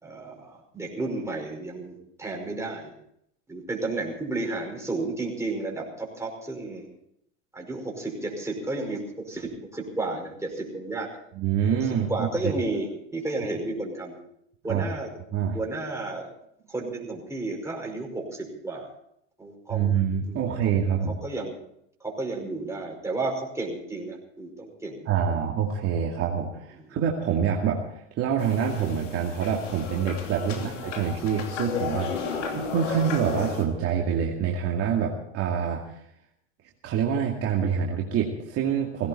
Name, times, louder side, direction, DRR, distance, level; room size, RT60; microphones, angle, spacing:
voice 1, 0.0-2.9 3.5-6.9 7.5-11.1 12.1-14.2 14.6-15.1 15.5-16.3 16.7-18.9 19.4-19.9 20.2-20.9 21.2-21.6 22.0-25.3 30.4-30.6 32.4-32.5, right 2 dB, 5° right, -1 dB, 5.3 m, -32 dB
voice 2, 11.3-12.3 14.7-14.8 15.3-15.6 19.7-21.1 25.1-35.8 36.8-39.1, right 7 dB, 40° right, -1 dB, 2.4 m, -26 dB
sound 1, 28.4-33.6, left 6 dB, 75° left, 3.0 m, -33 dB
18.0 x 16.5 x 4.3 m, 0.73 s
hypercardioid pair, 95°, 37 cm